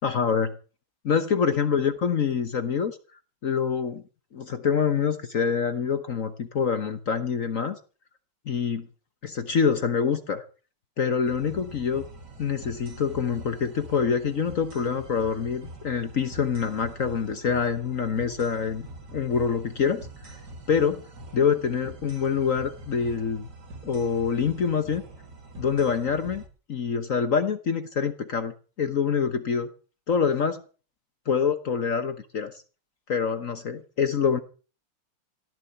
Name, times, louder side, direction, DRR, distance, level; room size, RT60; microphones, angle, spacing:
voice 1, 0.0-0.5 1.0-3.0 3.4-4.0 4.3-7.8 8.5-8.9 9.2-10.4 11.0-12.0 12.4-20.4 20.7-21.0 21.3-23.5 23.8-25.0 25.6-26.4 26.7-29.7 30.1-30.6 31.3-32.5 33.1-34.4, left 6 dB, 50° left, 10 dB, 1.1 m, -26 dB
sound 1, 11.3-26.5, right 2 dB, 50° right, 2.7 m, -44 dB
17.0 x 6.9 x 9.1 m, 0.38 s
omnidirectional pair, 2.4 m